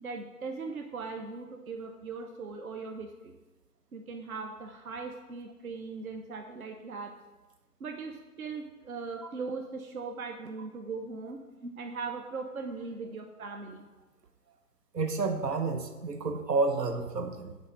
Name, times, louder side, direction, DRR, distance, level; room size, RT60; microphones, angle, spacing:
voice 1, 0.0-3.3 3.9-7.2 7.8-11.4 11.8-13.8, right 4 dB, 60° right, 4 dB, 0.7 m, -39 dB
voice 2, 14.9-17.6, right 3 dB, 85° right, 6 dB, 1.1 m, -30 dB
8.2 x 3.6 x 5.3 m, 1.2 s
hypercardioid pair, 170°, 47 cm